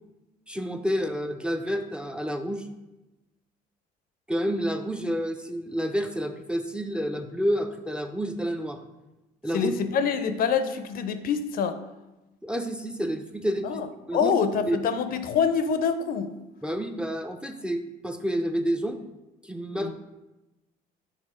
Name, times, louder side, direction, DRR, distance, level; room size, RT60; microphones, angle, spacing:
voice 1, 0.5-2.7 4.3-8.8 9.4-9.7 12.4-13.8 14.1-14.3 14.7-14.8 16.6-19.0 19.4-19.9, equal, 5° right, 6 dB, 0.4 m, -29 dB
voice 2, 9.5-11.8 13.6-16.3 19.7-19.9, left 6 dB, 60° left, 10 dB, 0.5 m, -26 dB
6.5 x 3.3 x 4.9 m, 1.0 s
cardioid pair, 110°, 17 cm